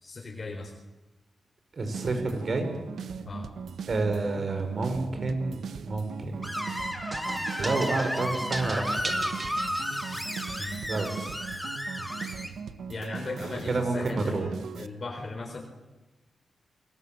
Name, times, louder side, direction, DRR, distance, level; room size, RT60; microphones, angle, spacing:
voice 1, 0.0-0.7 3.2-3.5 10.6-10.9 12.9-15.6, left 3 dB, 45° left, 2 dB, 4.0 m, -37 dB
voice 2, 1.7-2.7 3.9-6.6 7.6-9.2 10.9-11.1 13.7-14.5, right 3 dB, 55° right, 6 dB, 6.0 m, -29 dB
sound 1, 1.9-14.9, right 6 dB, 85° right, 1.4 m, -39 dB
Screech, 6.4-12.5, equal, ahead, 3.9 m, -33 dB
sound 2, 7.1-10.5, right 2 dB, 30° right, 2.9 m, -38 dB
29.5 x 21.5 x 7.9 m, 1.1 s
cardioid pair, 85°, 0 cm